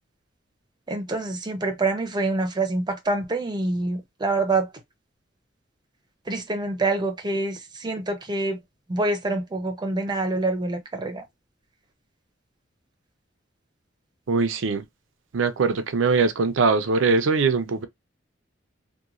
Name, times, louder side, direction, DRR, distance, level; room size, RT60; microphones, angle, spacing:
voice 1, 0.9-4.7 6.3-8.6 8.9-11.2, right 2 dB, 25° right, 0.6 m, -26 dB
voice 2, 14.3-14.8 15.3-17.9, right 4 dB, 70° right, 0.5 m, -22 dB
2.9 x 2.2 x 2.4 m
head